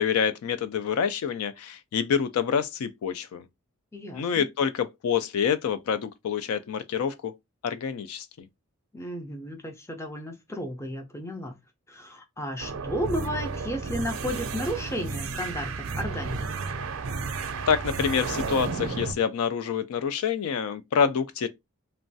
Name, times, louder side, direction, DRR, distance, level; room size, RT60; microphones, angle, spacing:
voice 1, 0.0-3.4 4.1-7.3 7.6-8.5 17.7-21.5, left 7 dB, 85° left, 0.3 m, -27 dB
voice 2, 3.9-4.5 8.9-11.5 11.9-16.6, equal, 10° left, 0.4 m, -33 dB
sound 1, 12.6-19.1, right 4 dB, 75° right, 0.5 m, -32 dB
3.0 x 2.2 x 2.6 m
head